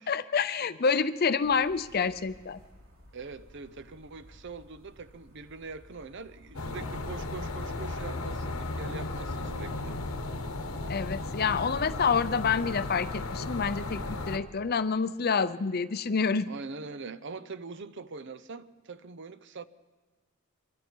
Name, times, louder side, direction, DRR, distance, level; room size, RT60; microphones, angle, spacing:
voice 1, 0.1-2.6 10.9-16.5, left 5 dB, 45° left, 0.6 m, -28 dB
sound 1, 1.4-6.7, equal, 85° right, 3.2 m, -56 dB
voice 2, 3.1-9.9 16.5-19.6, right 4 dB, 55° right, 0.7 m, -43 dB
sound 2, 6.5-14.4, left 2 dB, 85° left, 1.2 m, -35 dB
24.5 x 23.0 x 4.6 m
head